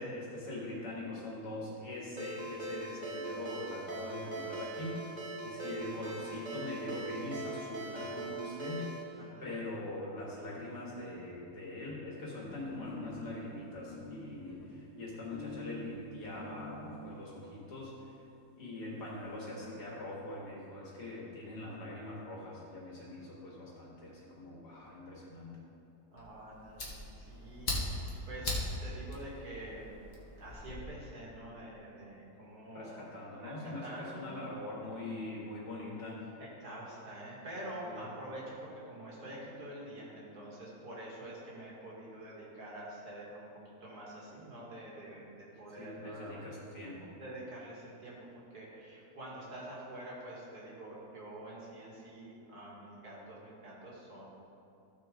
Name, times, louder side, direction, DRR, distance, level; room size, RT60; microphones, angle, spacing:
voice 1, 0.0-5.0 5.4-8.9 9.4-18.1 18.6-25.6 32.7-36.3 37.8-38.1 45.7-47.1, left 2 dB, 70° left, -5 dB, 2.6 m, -42 dB
Ringtone, 2.2-9.0, right 2 dB, 30° right, 1.0 m, -41 dB
voice 2, 5.4-5.8 8.7-8.9 9.2-9.5 26.1-26.9 27.2-29.9 30.4-33.0 33.4-34.4 36.4-43.5 43.8-46.4 47.2-48.2 48.5-54.2, right 1 dB, 60° right, -5 dB, 2.5 m, -46 dB
sound 1, 12.4-17.0 17.8-17.9 18.2-18.3 18.5-18.6 18.8-19.5, left 2 dB, 90° left, 2.7 m, -47 dB
Fire, 26.2-30.8, left 2 dB, 40° left, 1.6 m, -39 dB
14.0 x 6.5 x 3.8 m, 2.8 s
omnidirectional pair, 1.8 m